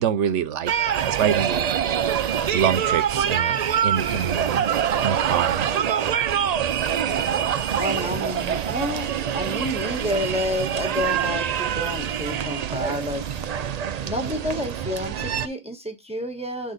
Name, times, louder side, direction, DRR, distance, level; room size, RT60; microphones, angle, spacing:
voice 1, 0.0-1.8 2.5-4.7 5.0-5.7, right 8 dB, 90° right, 1.0 m, -26 dB
sound 1, 0.7-15.5, right 8 dB, 60° right, 0.4 m, -25 dB
voice 2, 7.7-13.2 14.0-16.7, left 1 dB, 5° right, 1.2 m, -30 dB
7.2 x 3.8 x 3.9 m
omnidirectional pair, 1.2 m